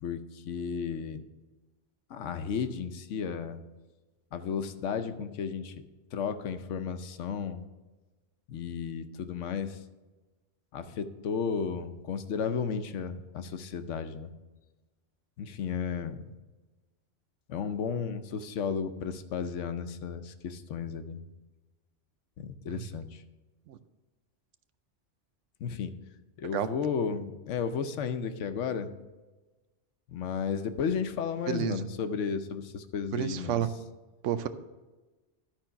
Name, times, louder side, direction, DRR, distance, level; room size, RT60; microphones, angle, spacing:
voice 1, 0.0-1.2 2.1-3.6 4.3-5.8 6.1-7.6 8.5-9.8 10.7-14.3 15.4-16.3 17.5-21.2 22.4-23.2 25.6-25.9 26.4-28.9 30.1-33.6, left 6 dB, 80° left, 10 dB, 1.0 m, -33 dB
voice 2, 31.5-31.9 33.1-33.7 34.2-34.5, right 10 dB, 90° right, 11 dB, 0.9 m, -30 dB
11.5 x 4.5 x 5.7 m, 1.2 s
omnidirectional pair, 1.2 m